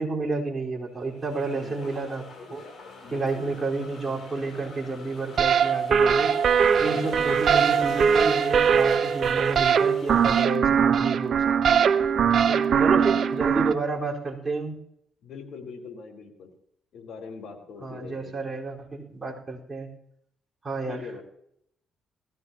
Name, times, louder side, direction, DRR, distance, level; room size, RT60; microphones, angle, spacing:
voice 1, 0.0-2.6 3.1-6.3 6.8-11.8 12.8-14.8 17.8-19.9 20.6-21.1, right 3 dB, 25° right, -4 dB, 4.3 m, -30 dB
sound 1, 0.9-10.4, left 3 dB, 50° left, 5.3 m, -43 dB
voice 2, 1.3-1.8 3.0-3.7 6.7-7.2 12.3-13.5 15.2-16.5 16.9-18.3 20.8-21.2, left 5 dB, 65° left, 0 dB, 4.0 m, -42 dB
sound 2, 5.4-13.7, right 7 dB, 60° right, 0.7 m, -21 dB
19.0 x 15.0 x 2.9 m, 0.73 s
cardioid pair, 90°, 0 cm